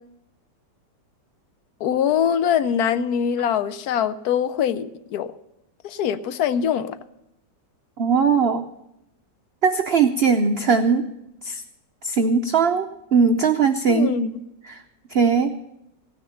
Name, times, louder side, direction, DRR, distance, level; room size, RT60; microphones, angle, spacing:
voice 1, 1.8-5.3 5.8-7.0 13.9-14.3, left 8 dB, 70° left, 13 dB, 1.1 m, -23 dB
voice 2, 8.0-8.6 9.6-11.0 11.4-11.6 12.0-14.2 14.7-14.8 15.1-15.5, right 5 dB, 85° right, 6 dB, 0.5 m, -19 dB
16.5 x 9.6 x 5.7 m, 0.84 s
omnidirectional pair, 1.9 m